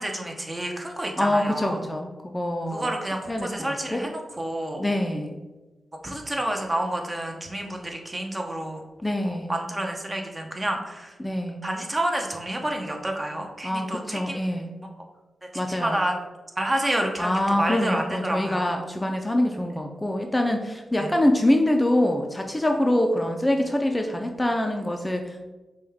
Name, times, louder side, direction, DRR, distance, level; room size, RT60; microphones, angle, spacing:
voice 1, 0.0-1.8 2.7-4.1 4.4-4.8 6.0-8.8 9.2-11.2 11.6-14.4 15.7-16.2 16.6-18.7 21.0-21.1, right 1 dB, 25° right, 2 dB, 0.8 m, -29 dB
voice 2, 1.2-2.9 3.3-4.0 4.8-5.4 9.0-9.5 11.2-11.6 13.6-14.7 15.5-16.0 17.2-25.5, left 1 dB, 15° left, 3 dB, 0.4 m, -25 dB
5.2 x 2.3 x 3.5 m, 1.1 s
cardioid pair, 55°, 0 cm